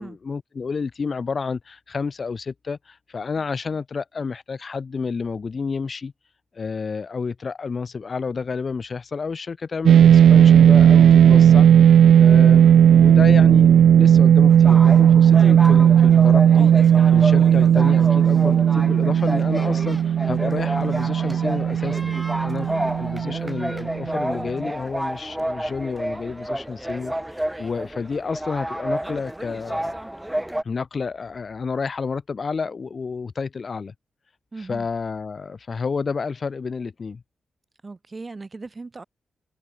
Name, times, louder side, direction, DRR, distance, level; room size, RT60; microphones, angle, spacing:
voice 1, 0.0-6.1 6.5-16.7 17.1-22.7 23.0-29.9 30.6-33.9 34.7-37.2, left 5 dB, 40° left, 4.7 m, -30 dB
sound 1, 9.9-24.3, right 9 dB, 90° right, 0.8 m, -14 dB
sound 2, 14.5-30.6, right 1 dB, 5° right, 3.2 m, -30 dB
voice 2, 22.7-23.0 34.5-34.9 37.8-39.0, right 3 dB, 25° right, 5.2 m, -38 dB
wide cardioid pair, 145°, 0 cm